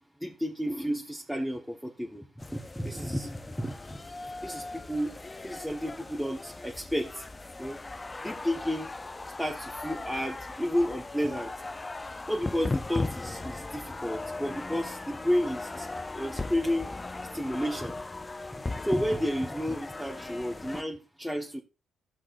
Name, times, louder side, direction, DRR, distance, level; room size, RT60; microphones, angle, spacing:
voice 1, 0.2-4.0 4.4-5.1 5.4-7.2 7.6-7.8 8.2-8.9 9.4-11.5 12.3-15.9 16.2-16.9 17.3-18.0 18.5-21.6, equal, ahead, 1.2 m, -31 dB
sound 1, 2.4-20.8, left 3 dB, 20° left, 0.4 m, -38 dB
17.5 x 6.0 x 2.5 m
cardioid pair, 90°, 0 cm